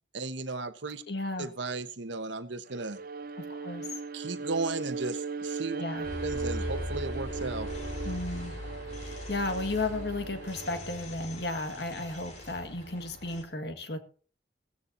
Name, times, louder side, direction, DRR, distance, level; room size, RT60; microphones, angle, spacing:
voice 1, 0.1-1.0 1.4-3.0 4.1-5.8 6.2-7.7, right 3 dB, 80° right, 10 dB, 1.2 m, -35 dB
voice 2, 1.1-1.5 3.4-3.9 5.8-6.1 8.0-8.5 9.0-14.0, left 2 dB, 60° left, 7 dB, 1.8 m, -34 dB
Bowed string instrument, 2.7-11.1, right 4 dB, 50° right, 0.5 m, -38 dB
sound 1, 6.0-13.4, left 1 dB, 40° left, 4.0 m, -40 dB
16.0 x 15.5 x 2.8 m, 0.39 s
head